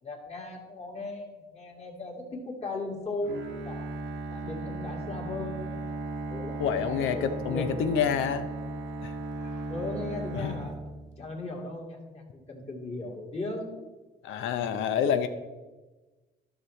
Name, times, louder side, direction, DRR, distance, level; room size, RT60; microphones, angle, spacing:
voice 1, 0.0-3.9 4.3-5.6 6.3-7.2 7.5-7.7 9.4-10.8 11.2-13.8 14.4-14.5, left 2 dB, 30° left, -1 dB, 2.2 m, -37 dB
Bowed string instrument, 3.2-11.4, right 2 dB, 85° right, 1.1 m, -37 dB
voice 2, 6.6-8.5 9.0-9.1 10.3-10.5 14.2-15.3, left 7 dB, 85° left, 10 dB, 0.7 m, -27 dB
12.5 x 5.9 x 3.2 m, 1.2 s
cardioid pair, 90°, 20 cm